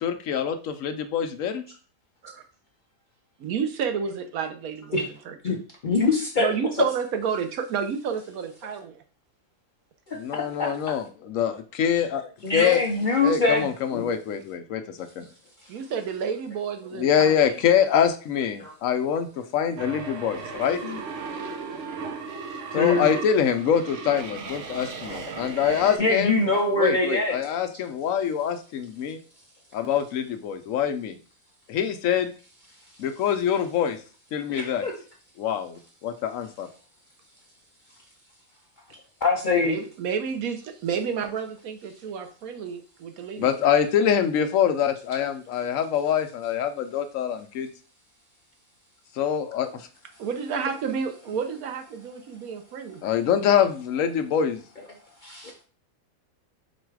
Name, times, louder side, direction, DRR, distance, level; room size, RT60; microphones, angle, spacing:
voice 1, 0.0-1.6 10.1-12.8 13.2-15.3 16.9-19.3 19.5-20.8 22.7-26.4 26.8-29.2 29.7-31.2 31.7-32.3 33.0-34.0 34.3-34.8 35.4-36.7 43.4-47.7 49.1-49.9 53.0-54.6, left 8 dB, 70° left, 8 dB, 0.9 m, -25 dB
voice 2, 3.4-5.4 6.4-9.0 15.7-17.6 39.6-43.5 50.2-53.0, right 6 dB, 85° right, 6 dB, 1.2 m, -30 dB
voice 3, 5.8-6.9 10.1-10.2 10.6-10.7 12.4-14.1 18.6-18.7 20.8-21.0 22.7-23.1 26.0-27.4 34.5-34.9 39.2-39.8 55.2-55.5, left 3 dB, 55° left, 1 dB, 0.5 m, -23 dB
sound 1, 19.8-26.0, right 4 dB, 65° right, 1.0 m, -36 dB
4.7 x 2.3 x 4.6 m, 0.38 s
omnidirectional pair, 1.5 m